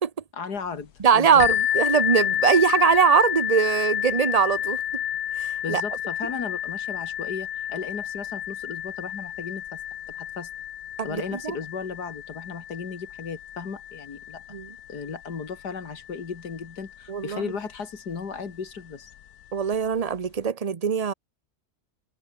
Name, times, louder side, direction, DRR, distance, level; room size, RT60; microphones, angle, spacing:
voice 1, 0.3-1.5 5.6-9.8 10.2-10.5 11.0-14.4 14.9-19.1, left 5 dB, 90° left, 2.8 m, -35 dB
voice 2, 1.0-4.8 5.4-5.8 11.0-11.6 14.5-14.7 17.1-17.4 19.5-21.1, right 7 dB, 35° right, 0.7 m, -22 dB
sound 1, 1.4-16.9 17.7-17.8 18.4-18.5, left 11 dB, 70° left, 1.4 m, -30 dB
omnidirectional pair, 1.7 m